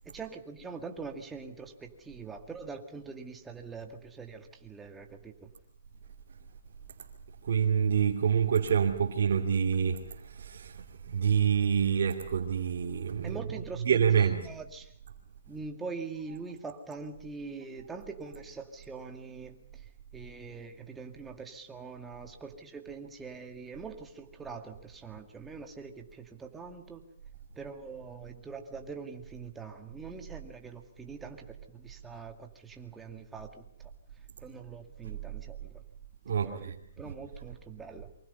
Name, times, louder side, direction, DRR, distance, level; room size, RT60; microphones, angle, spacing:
voice 1, 0.1-5.5 13.2-13.9 14.2-14.9 15.5-19.8 20.1-27.0 27.6-33.9 34.4-35.8 36.3-38.1, right 4 dB, 10° right, 2.1 m, -43 dB
voice 2, 7.4-14.4 36.3-36.7 37.0-37.1, right 7 dB, 60° right, 2.7 m, -27 dB
28.0 x 24.5 x 5.6 m
hypercardioid pair, 160°, 0 cm